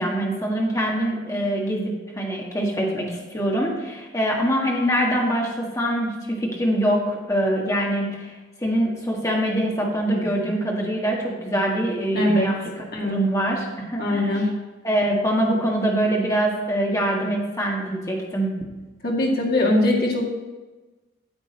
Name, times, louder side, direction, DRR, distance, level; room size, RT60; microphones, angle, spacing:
voice 1, 0.0-8.3 8.6-14.4 14.8-18.5, right 1 dB, 15° left, -2 dB, 1.6 m, -24 dB
voice 2, 12.1-12.5 12.9-13.2 14.0-14.5 19.0-20.3, left 1 dB, 50° left, -2 dB, 2.0 m, -21 dB
9.2 x 7.8 x 4.3 m, 1.2 s
head